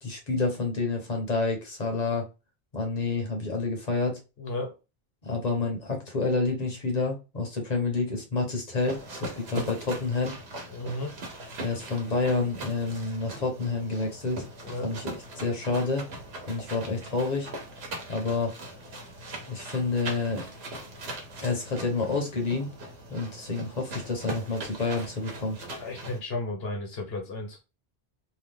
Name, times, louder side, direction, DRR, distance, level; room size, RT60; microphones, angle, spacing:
voice 1, 0.0-2.3 2.7-4.2 5.2-10.3 11.6-14.4 14.8-16.0 16.5-17.5 18.1-18.5 19.5-20.5 21.4-22.7 23.1-25.6, left 3 dB, 45° left, 2 dB, 1.0 m, -29 dB
voice 2, 4.4-4.7 10.7-11.1 14.6-14.9 25.8-27.6, left 2 dB, 70° left, 2 dB, 1.3 m, -34 dB
sound 1, 8.7-26.2, right 1 dB, 80° right, 1.2 m, -40 dB
2.9 x 2.4 x 3.4 m, 0.28 s
omnidirectional pair, 1.1 m